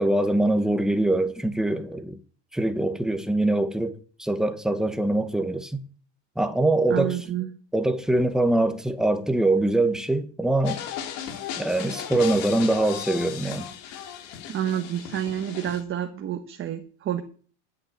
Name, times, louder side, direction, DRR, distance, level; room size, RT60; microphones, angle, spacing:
voice 1, 0.0-2.2 2.5-5.8 6.4-7.2 7.7-10.8 11.6-13.7, right 2 dB, ahead, 1.1 m, -23 dB
voice 2, 6.9-7.5 14.5-17.2, right 11 dB, 35° right, 1.3 m, -29 dB
sound 1, 10.6-15.8, left 9 dB, 65° left, 3.0 m, -36 dB
8.8 x 8.5 x 8.6 m
cardioid pair, 140°, 36 cm